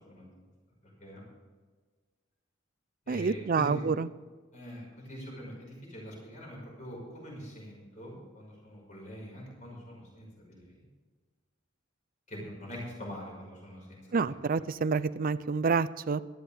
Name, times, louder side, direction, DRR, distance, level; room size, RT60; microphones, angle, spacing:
voice 1, 0.8-1.2 3.1-3.8 4.5-10.8 12.3-14.3, equal, 40° left, -2 dB, 5.3 m, -43 dB
voice 2, 3.1-4.1 14.1-16.2, right 5 dB, 45° right, 16 dB, 0.4 m, -28 dB
18.0 x 13.0 x 3.5 m, 1.4 s
head